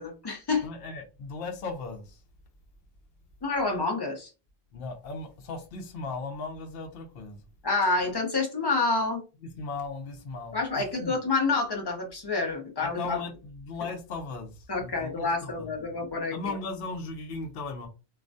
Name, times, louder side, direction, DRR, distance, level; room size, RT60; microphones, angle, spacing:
voice 1, 0.0-0.7 3.4-4.3 7.6-9.2 10.5-13.2 14.7-16.4, left 3 dB, 30° left, 0.6 m, -28 dB
voice 2, 0.6-2.2 4.7-7.4 9.6-11.1 12.8-15.7 16.3-17.9, left 3 dB, 65° left, 0.7 m, -37 dB
2.3 x 2.1 x 2.5 m
omnidirectional pair, 1.1 m